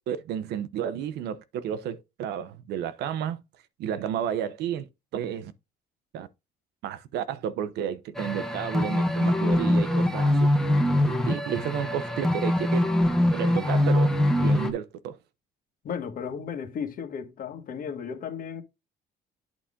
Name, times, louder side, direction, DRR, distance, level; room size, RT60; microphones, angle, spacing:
voice 1, 0.1-3.4 3.8-4.9 5.1-5.5 6.1-6.3 6.8-10.5 11.1-12.9 13.3-15.2, right 9 dB, 80° right, 0.9 m, -32 dB
sound 1, 8.2-14.7, left 1 dB, 5° left, 1.3 m, -23 dB
voice 2, 15.8-18.6, left 7 dB, 55° left, 1.6 m, -34 dB
8.9 x 4.2 x 3.7 m
cardioid pair, 110°, 17 cm